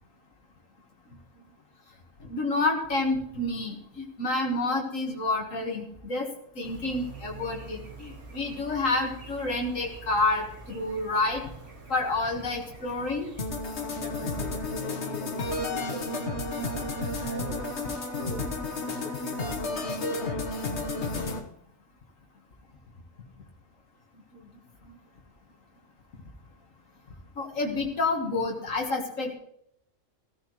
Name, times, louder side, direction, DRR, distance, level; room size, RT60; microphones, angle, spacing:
voice 1, 2.3-6.3 6.6-11.4 11.9-13.3 27.4-29.4, left 2 dB, 85° left, 1 dB, 2.1 m, -29 dB
sound 1, 6.6-14.8, right 3 dB, 65° right, 2.5 m, -46 dB
sound 2, 13.4-21.4, left 2 dB, 60° left, 1.6 m, -32 dB
voice 2, 14.0-17.7 18.2-20.5, equal, 40° left, -1 dB, 2.7 m, -41 dB
15.5 x 14.5 x 3.1 m, 0.72 s
omnidirectional pair, 1.3 m